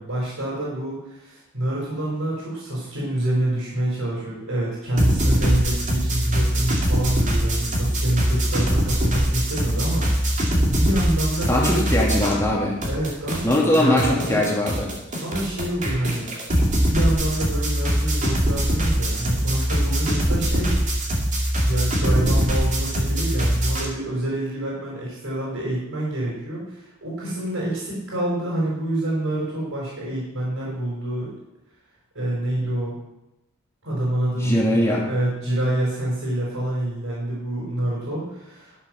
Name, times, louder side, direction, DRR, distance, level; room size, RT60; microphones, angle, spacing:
voice 1, 0.0-11.9 12.9-14.4 15.2-16.3 16.8-20.8 21.6-31.3 32.1-32.9 33.8-38.8, right 1 dB, 70° right, -5 dB, 4.6 m, -27 dB
sound 1, 5.0-12.6 12.8-23.9, equal, 35° right, 2.3 m, -22 dB
voice 2, 11.5-12.8 13.4-14.9 34.4-35.1, left 1 dB, 10° left, -3 dB, 2.1 m, -21 dB
12.0 x 7.3 x 6.2 m, 0.93 s
head